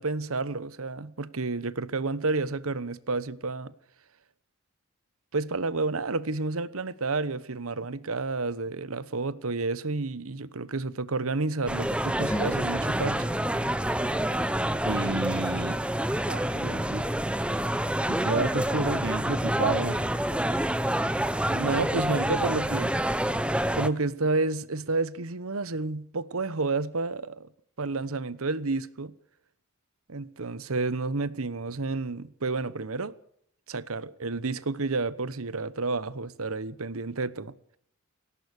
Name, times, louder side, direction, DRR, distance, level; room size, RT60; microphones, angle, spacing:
voice 1, 0.0-3.7 5.3-13.3 21.3-22.9 23.3-23.4 23.7-27.5 27.8-29.1 30.1-33.1 33.7-37.5, right 3 dB, 80° right, 1.1 m, -30 dB
sound 1, 11.7-23.9, right 1 dB, 5° right, 0.9 m, -27 dB
sound 2, 12.3-15.9, equal, 15° left, 3.7 m, -40 dB
voice 2, 14.8-15.8 16.3-17.1 18.1-20.1, right 2 dB, 55° right, 1.1 m, -30 dB
19.0 x 17.0 x 8.4 m
head